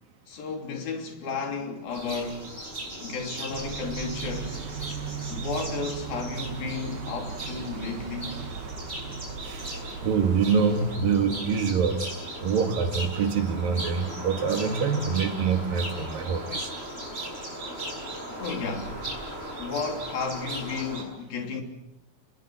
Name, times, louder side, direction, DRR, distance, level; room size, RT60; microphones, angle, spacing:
voice 1, 0.3-2.5 3.0-4.6 5.3-8.4 16.9-17.1 18.3-19.1 19.6-21.6, left 4 dB, 80° left, 5.0 m, -33 dB
sound 1, 1.9-21.0, right 1 dB, 15° right, 7.1 m, -37 dB
sound 2, 3.5-11.0, right 6 dB, 50° right, 2.4 m, -37 dB
voice 2, 9.4-9.8 10.0-12.0 12.4-16.7, right 6 dB, 75° right, 3.7 m, -25 dB
25.0 x 21.5 x 7.7 m
omnidirectional pair, 4.2 m